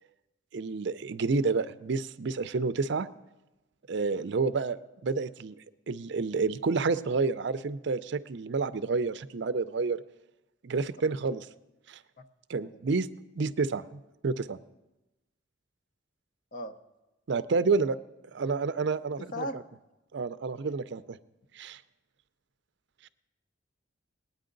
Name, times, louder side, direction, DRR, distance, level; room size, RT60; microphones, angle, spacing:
voice 1, 0.5-3.1 3.9-5.6 5.9-10.0 10.6-11.4 11.9-12.0 12.5-13.1 13.4-14.6 17.3-18.0 18.3-19.5 20.1-21.2 21.5-21.8 23.0-23.1, right 4 dB, 60° right, 14 dB, 0.5 m, -29 dB
voice 2, 19.2-19.6, left 1 dB, 45° left, 8 dB, 0.8 m, -36 dB
20.5 x 9.3 x 3.9 m, 1.0 s
head